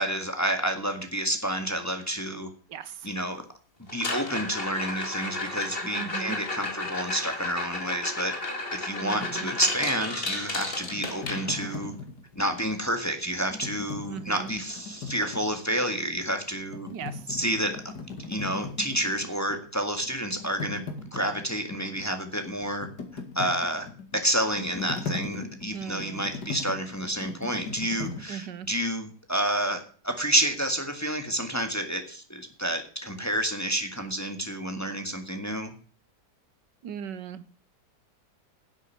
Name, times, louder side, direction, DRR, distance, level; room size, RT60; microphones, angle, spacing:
voice 1, 0.0-2.5 3.0-3.4 3.9-8.3 8.7-11.9 12.3-16.9 17.3-17.8 18.3-20.8 21.1-22.9 23.1-23.9 24.1-35.7, right 1 dB, 10° left, 6 dB, 1.7 m, -29 dB
voice 2, 2.7-3.1 5.9-6.4 9.0-9.5 14.1-14.5 16.9-17.4 25.7-26.3 28.3-28.7 36.8-37.5, right 8 dB, 75° right, 14 dB, 1.5 m, -38 dB
sound 1, 3.9-11.9 14.1-14.2 14.5-14.8 15.2-15.3 15.9-16.0 17.9-18.0, left 2 dB, 30° left, 2.3 m, -33 dB
sound 2, 9.2-12.7 13.3-16.1 16.5-19.7 20.0-28.2, left 4 dB, 65° left, 2.9 m, -39 dB
10.5 x 8.2 x 6.9 m, 0.41 s
omnidirectional pair, 1.9 m